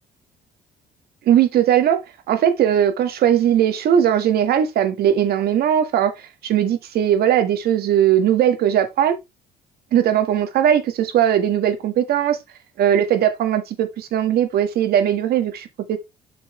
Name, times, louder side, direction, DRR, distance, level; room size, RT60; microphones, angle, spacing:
voice 1, 1.3-2.0 2.3-9.2 9.9-12.4 12.8-16.0, right 10 dB, 65° right, 1.7 m, -19 dB
7.5 x 6.1 x 3.3 m
cardioid pair, 110°, 17 cm